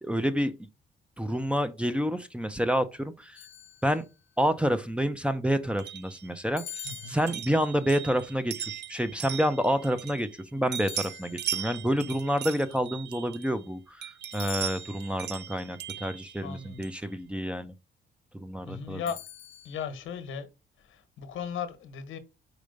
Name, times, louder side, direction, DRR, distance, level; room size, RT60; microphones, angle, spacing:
voice 1, 0.0-0.7 1.2-3.4 3.8-4.0 4.4-6.6 7.1-17.7 18.4-19.0, equal, 5° right, 0.7 m, -28 dB
sound 1, 3.4-4.3 6.6-7.8 10.8-11.8 14.3-15.3 19.1-19.9, left 13 dB, 65° left, 0.5 m, -45 dB
sound 2, 5.8-10.4 10.7-13.6 14.0-17.1, right 11 dB, 60° right, 0.5 m, -39 dB
voice 2, 6.8-7.2 16.4-16.8 18.7-19.2 19.6-20.5 20.9-22.2, left 7 dB, 85° left, 1.3 m, -36 dB
5.0 x 4.4 x 5.2 m
cardioid pair, 90°, 20 cm